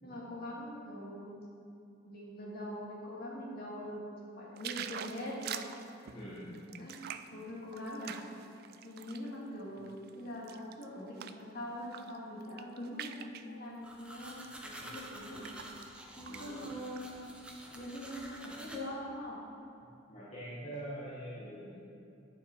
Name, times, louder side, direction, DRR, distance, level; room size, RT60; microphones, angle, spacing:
voice 1, 0.0-1.3 2.0-4.0 4.3-5.7 6.8-8.1 8.8-9.9 10.2-15.5 16.2-17.2 17.7-19.4, left 1 dB, 50° left, -5 dB, 2.2 m, -43 dB
sound 1, 4.6-9.3 9.8-11.5 11.8-12.2 12.4-13.5 14.3-14.5 14.9-16.0 16.3-16.4 16.7-17.5 18.0-18.1, right 9 dB, 50° right, 0.3 m, -45 dB
voice 2, 6.0-6.7 14.8-15.0 16.2-16.7 20.1-21.7, right 1 dB, 30° left, -9 dB, 1.5 m, -45 dB
sound 2, 13.8-18.8, right 1 dB, 5° right, 0.7 m, -49 dB
9.8 x 7.0 x 4.6 m, 2.7 s
head